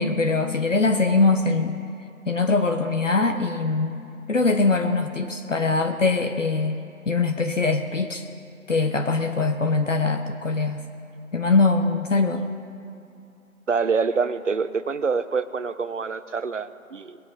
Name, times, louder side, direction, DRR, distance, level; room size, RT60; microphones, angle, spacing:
voice 1, 0.0-1.8 2.2-4.0 4.3-6.7 7.0-8.3 8.7-10.8 11.3-12.5, left 3 dB, 60° left, 5 dB, 1.1 m, -22 dB
voice 2, 13.7-17.2, right 5 dB, 60° right, 13 dB, 0.8 m, -26 dB
22.0 x 8.9 x 5.1 m, 2.7 s
figure-of-eight pair, 170°, 42 cm